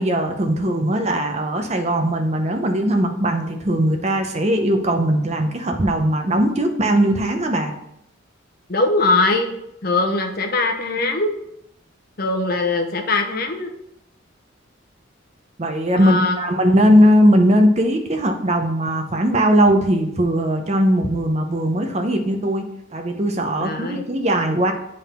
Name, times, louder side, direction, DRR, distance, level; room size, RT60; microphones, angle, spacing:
voice 1, 0.0-7.7 15.6-22.6 22.9-24.7, equal, 35° right, 5 dB, 0.7 m, -19 dB
voice 2, 8.7-9.5 9.8-11.3 12.2-13.7 16.0-16.4 23.6-24.0, left 2 dB, 45° left, 4 dB, 0.8 m, -21 dB
8.0 x 3.7 x 4.3 m, 0.80 s
head